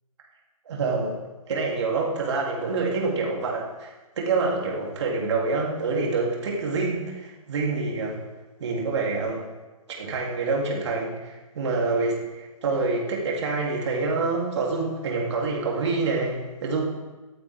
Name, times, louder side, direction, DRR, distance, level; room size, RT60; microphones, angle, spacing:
voice 1, 0.7-1.2 1.5-8.2 8.6-9.5 10.0-16.9, right 3 dB, 50° right, -2 dB, 3.4 m, -27 dB
23.5 x 8.7 x 3.7 m, 1.2 s
figure-of-eight pair, 135°, 18 cm